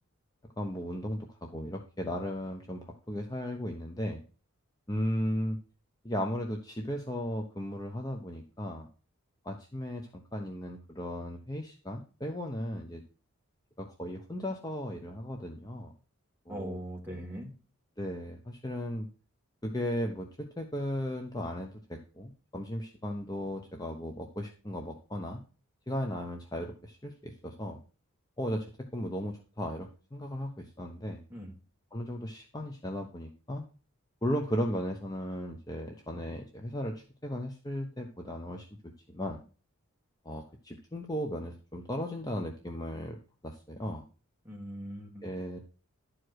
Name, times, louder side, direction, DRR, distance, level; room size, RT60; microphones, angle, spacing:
voice 1, 0.6-4.2 4.9-5.6 6.0-8.9 9.4-13.0 13.8-15.9 16.5-16.8 18.0-19.1 19.6-25.4 25.9-27.8 28.4-31.2 31.9-33.6 34.2-38.7 39.1-39.4 40.2-43.2 43.4-44.0 45.2-45.6, equal, 15° left, 3 dB, 0.7 m, -36 dB
voice 2, 16.5-17.5 31.3-31.5 44.4-45.3, equal, 10° right, -1 dB, 2.0 m, -40 dB
11.5 x 4.8 x 6.3 m, 0.37 s
head